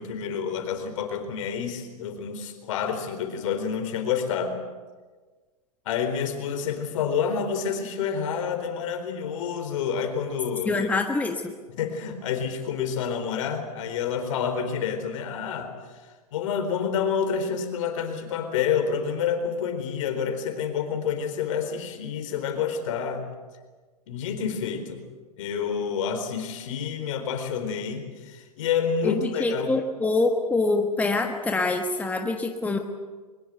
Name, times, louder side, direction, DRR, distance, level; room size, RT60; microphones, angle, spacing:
voice 1, 0.0-4.6 5.9-10.9 11.7-15.7 16.3-23.3 24.1-25.0 25.4-29.7, left 7 dB, 55° left, 7 dB, 4.2 m, -28 dB
voice 2, 10.7-11.5 29.0-32.8, left 3 dB, 10° left, 4 dB, 1.4 m, -25 dB
23.0 x 21.5 x 8.1 m, 1.4 s
hypercardioid pair, 115°, 20 cm